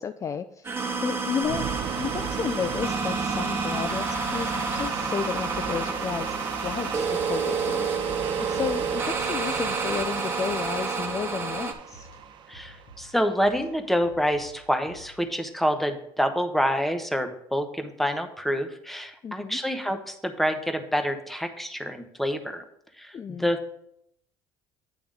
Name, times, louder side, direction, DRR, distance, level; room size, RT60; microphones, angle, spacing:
voice 1, 0.0-1.7 1.9-12.1 19.2-19.6 23.1-23.5, left 7 dB, 35° left, 10 dB, 0.4 m, -32 dB
sound 1, 0.6-11.7, right 4 dB, 25° right, 1.1 m, -29 dB
sound 2, 1.4-13.6, right 8 dB, 60° right, 0.7 m, -36 dB
sound 3, 4.3-15.4, left 1 dB, 85° left, 2.3 m, -51 dB
voice 2, 12.5-22.6 23.0-23.8, equal, ahead, 7 dB, 0.9 m, -27 dB
8.9 x 3.4 x 6.4 m, 0.74 s
cardioid pair, 95°, 9 cm